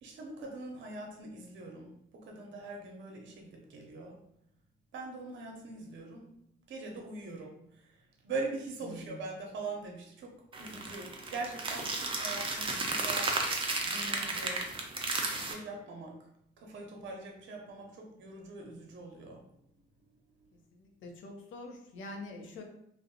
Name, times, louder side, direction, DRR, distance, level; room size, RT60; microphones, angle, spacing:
voice 1, 0.0-1.9 2.2-4.2 4.9-6.3 6.7-7.5 8.2-10.3 10.6-13.3 13.8-14.6 15.3-16.1 16.6-19.4, right 3 dB, 70° right, 1 dB, 0.6 m, -42 dB
voice 2, 8.8-9.2 20.7-22.6, left 2 dB, 75° left, 3 dB, 0.6 m, -45 dB
sound 1, 10.5-15.5, right 3 dB, 25° right, 0.4 m, -33 dB
2.5 x 2.0 x 2.7 m, 0.76 s
cardioid pair, 90°, 20 cm